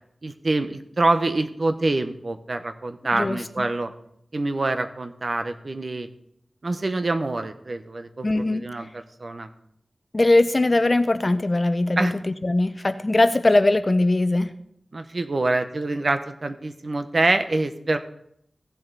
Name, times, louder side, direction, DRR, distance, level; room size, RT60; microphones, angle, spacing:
voice 1, 0.2-3.9 4.3-6.1 6.6-9.5 12.0-12.1 14.9-18.0, right 2 dB, 55° right, 8 dB, 0.9 m, -25 dB
voice 2, 3.1-3.7 8.2-8.7 10.1-14.5, left 2 dB, 35° left, 11 dB, 0.7 m, -21 dB
15.5 x 7.7 x 4.0 m, 0.72 s
wide cardioid pair, 70°, 0 cm